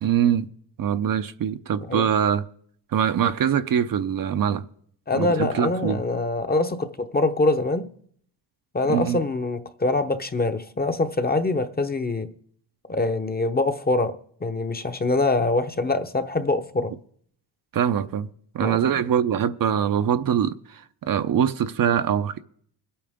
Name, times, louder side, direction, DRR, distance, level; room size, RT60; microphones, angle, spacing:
voice 1, 0.0-0.5 0.8-2.4 2.9-4.6 5.1-6.0 8.9-9.2 17.7-18.3 18.5-22.4, right 9 dB, 45° right, 0.7 m, -23 dB
voice 2, 5.1-7.9 8.7-12.3 12.9-14.1 14.4-16.9 18.6-19.0, left 2 dB, 20° left, 0.9 m, -24 dB
21.5 x 8.8 x 3.6 m
cardioid pair, 90°, 47 cm